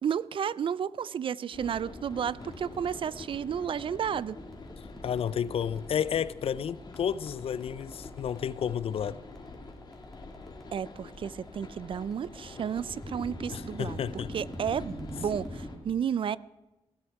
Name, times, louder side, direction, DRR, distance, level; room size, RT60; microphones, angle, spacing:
voice 1, 0.0-4.4 10.7-14.0 14.3-16.4, right 8 dB, 50° right, 0.4 m, -32 dB
sound 1, 1.5-15.8, left 3 dB, 40° left, 2.1 m, -46 dB
sound 2, 2.0-15.7, left 1 dB, 5° left, 2.6 m, -45 dB
voice 2, 5.0-9.2 13.5-14.3, left 8 dB, 60° left, 0.5 m, -31 dB
19.0 x 13.0 x 4.7 m
cardioid pair, 105°, 11 cm